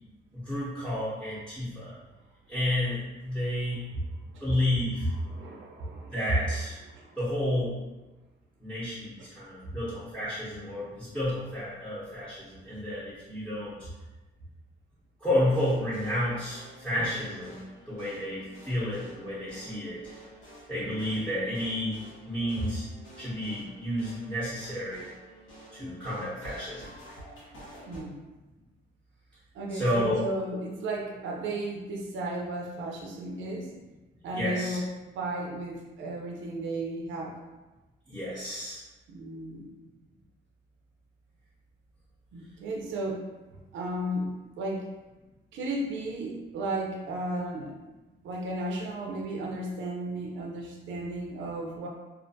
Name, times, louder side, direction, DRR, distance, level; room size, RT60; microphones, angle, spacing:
voice 1, 0.3-1.9 2.5-3.8 4.4-5.0 6.1-6.8 7.2-7.7 8.6-13.7 15.2-20.1 20.7-21.9 22.2-22.9 23.2-25.1 25.7-26.8 29.7-30.2 34.3-34.8 38.1-38.8, left 1 dB, 5° left, -11 dB, 0.8 m, -31 dB
voice 2, 5.0-7.2 9.2-9.3 9.6-9.7 22.6-22.7 27.9-28.2 29.5-33.7 34.2-34.9 35.1-37.4 39.1-39.7 42.3-43.3 43.7-44.9 45.5-47.8 48.2-51.9, right 1 dB, 75° right, -1 dB, 0.5 m, -34 dB
sound 1, 15.3-28.0, equal, 85° left, 1.0 m, -50 dB
2.4 x 2.1 x 2.6 m, 1.1 s
cardioid pair, 90°, 20 cm